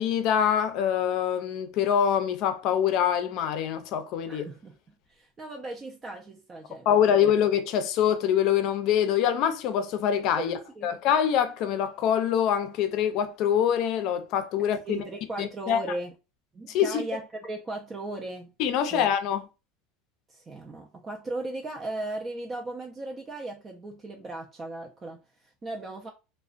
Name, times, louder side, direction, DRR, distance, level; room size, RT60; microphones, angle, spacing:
voice 1, 0.0-4.5 6.9-10.5 10.8-15.0 15.4-15.8 16.7-17.0 18.6-19.4, left 9 dB, 55° left, 0.4 m, -25 dB
voice 2, 4.3-4.8 5.1-7.3 10.4-10.9 14.9-16.1 16.5-18.5 18.9-19.1 20.3-26.1, right 2 dB, 25° right, 0.4 m, -37 dB
2.4 x 2.1 x 2.4 m
supercardioid pair, 115°, 0 cm